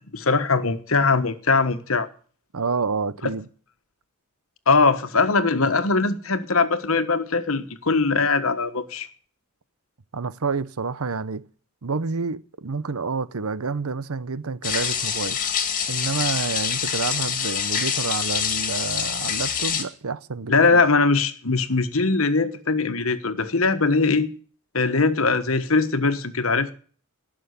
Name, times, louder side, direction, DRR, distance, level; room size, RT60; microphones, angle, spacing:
voice 1, 0.1-2.1 4.7-9.1 20.5-24.3 24.7-26.7, left 4 dB, 70° left, 1.4 m, -21 dB
voice 2, 2.5-3.5 10.1-11.4 11.8-15.4 15.9-20.8, right 4 dB, 85° right, 0.8 m, -28 dB
sound 1, 14.6-19.8, left 7 dB, 40° left, 2.3 m, -26 dB
18.0 x 6.4 x 9.6 m
head